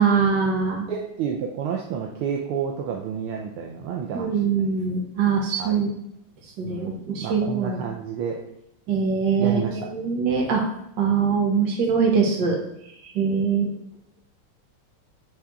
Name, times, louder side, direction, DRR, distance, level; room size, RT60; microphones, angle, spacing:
voice 1, 0.0-0.9 4.1-5.9 6.6-7.8 8.9-10.6 11.0-12.6 13.0-13.7, right 5 dB, 55° right, -1 dB, 1.9 m, -22 dB
voice 2, 0.9-4.6 5.6-5.8 6.6-8.4 9.3-9.8, right 7 dB, 75° right, 1 dB, 1.5 m, -30 dB
9.9 x 3.5 x 3.6 m, 0.79 s
omnidirectional pair, 2.4 m